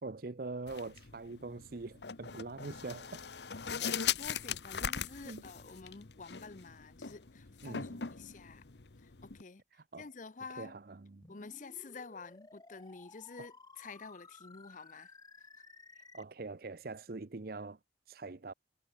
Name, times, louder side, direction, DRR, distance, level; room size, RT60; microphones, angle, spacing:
voice 1, 0.0-3.2 5.2-5.4 7.6-8.0 9.9-10.1 10.6-11.3 13.4-13.5 16.1-17.8 18.1-18.5, right 3 dB, 55° right, 0.7 m, -43 dB
sound 1, 0.7-9.4, left 7 dB, 70° left, 1.1 m, -40 dB
voice 2, 3.8-8.6 9.0-9.6 10.0-10.8 11.3-15.5, left 4 dB, 45° left, 0.7 m, -49 dB
sound 2, 11.2-16.2, left 3 dB, 20° left, 1.3 m, -56 dB
head